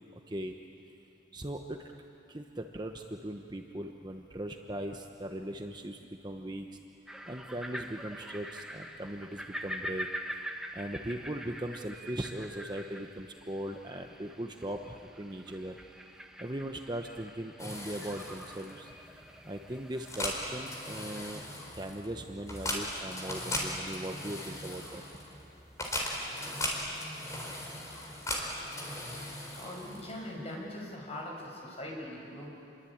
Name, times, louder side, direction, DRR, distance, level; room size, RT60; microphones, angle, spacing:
voice 1, 1.3-1.9 2.3-6.7 7.3-10.1 10.7-15.8 16.4-18.9 19.4-21.4 21.8-25.0, right 1 dB, 20° right, 4 dB, 1.0 m, -39 dB
sound 1, 7.1-21.3, equal, 5° right, 1.2 m, -45 dB
sound 2, 17.6-30.3, left 1 dB, 15° left, 4.0 m, -38 dB
voice 2, 29.6-32.5, left 1 dB, 35° left, -1 dB, 6.2 m, -41 dB
28.0 x 22.5 x 8.8 m, 2.7 s
head